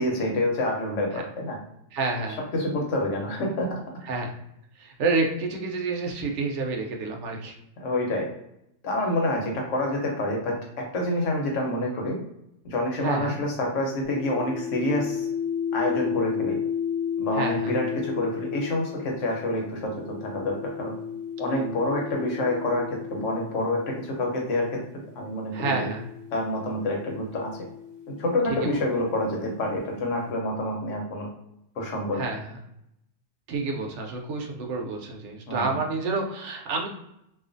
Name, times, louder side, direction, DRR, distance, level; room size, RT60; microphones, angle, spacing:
voice 1, 0.0-1.6 2.3-3.8 7.8-8.3 8.8-12.2 12.6-15.3 15.7-16.6 17.2-20.9 21.4-24.8 25.1-25.9 26.3-27.5 28.2-31.3 31.8-32.3 35.5-35.8, left 1 dB, 80° left, 0 dB, 1.1 m, -27 dB
voice 2, 1.9-2.4 4.1-4.3 4.8-7.5 13.0-13.4 17.4-17.7 25.5-26.0 32.2-32.4 33.5-36.9, right 3 dB, 70° right, 1 dB, 0.9 m, -28 dB
sound 1, 14.0-24.4 25.3-29.0, left 8 dB, 25° right, 0.7 m, -33 dB
2.4 x 2.3 x 2.5 m, 0.78 s
omnidirectional pair, 1.3 m